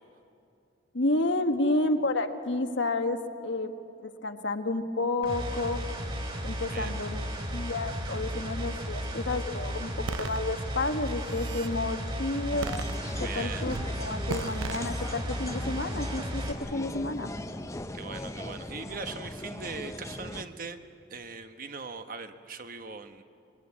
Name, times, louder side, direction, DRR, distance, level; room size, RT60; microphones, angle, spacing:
voice 1, 0.9-3.7 4.0-5.8 6.4-7.2 7.5-9.9 10.2-12.7 13.2-17.3, left 2 dB, 65° left, 6 dB, 1.4 m, -30 dB
sound 1, 5.2-16.5, equal, 25° right, 3.2 m, -34 dB
voice 2, 6.6-6.9 13.2-13.7 17.9-20.8 21.1-23.2, right 4 dB, 45° right, 8 dB, 1.1 m, -40 dB
sound 2, 10.1-10.4 11.1-11.7 12.6-13.3 13.7-13.9 14.3-14.8, right 5 dB, 70° right, 0.5 m, -36 dB
sound 3, 12.5-20.4, left 1 dB, 15° left, 0.7 m, -39 dB
25.5 x 22.0 x 8.7 m, 2.6 s
head